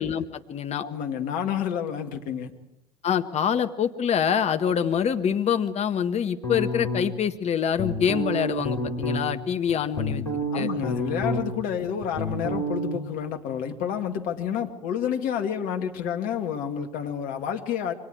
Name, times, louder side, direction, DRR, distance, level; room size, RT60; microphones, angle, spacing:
voice 1, 0.0-0.8 3.0-10.2 10.5-10.7, left 8 dB, 40° left, 8 dB, 1.6 m, -25 dB
voice 2, 0.8-2.5 10.5-17.9, left 8 dB, 60° left, 5 dB, 2.3 m, -29 dB
sound 1, 6.4-7.3 7.8-9.2 9.7-11.6 11.9-13.0, equal, 90° left, 4.2 m, -29 dB
28.0 x 24.5 x 4.8 m, 0.86 s
figure-of-eight pair, 60°, 16 cm